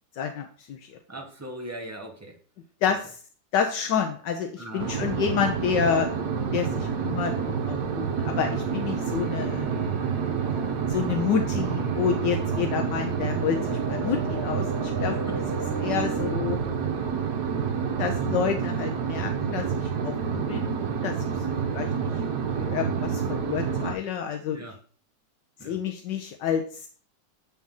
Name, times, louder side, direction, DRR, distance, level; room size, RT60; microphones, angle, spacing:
voice 1, 0.2-1.0 2.8-3.2 3.5-6.1 6.5-9.7 10.9-15.2 15.8-16.6 18.0-21.2 21.6-21.9 22.6-24.7 25.6-26.9, left 7 dB, 75° left, 4 dB, 1.3 m, -29 dB
voice 2, 1.1-2.4 4.6-4.9 15.3-15.4 24.5-24.7 25.6-25.8, right 1 dB, 15° right, 1 dB, 0.6 m, -39 dB
sound 1, 4.8-23.9, right 6 dB, 70° right, 1.3 m, -28 dB
sound 2, 8.6-16.4, right 1 dB, 40° right, 1.7 m, -38 dB
7.2 x 4.2 x 3.7 m, 0.43 s
omnidirectional pair, 1.9 m